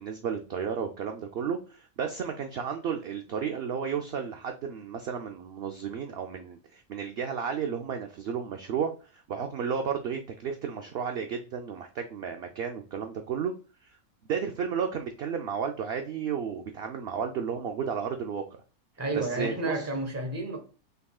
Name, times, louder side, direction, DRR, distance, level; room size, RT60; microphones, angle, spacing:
voice 1, 0.0-13.5 13.8-13.9 14.3-18.4 19.1-19.9, right 7 dB, 65° right, 0.6 m, -33 dB
voice 2, 19.0-20.6, right 2 dB, 15° right, 0.8 m, -31 dB
5.4 x 3.6 x 2.3 m
omnidirectional pair, 1.5 m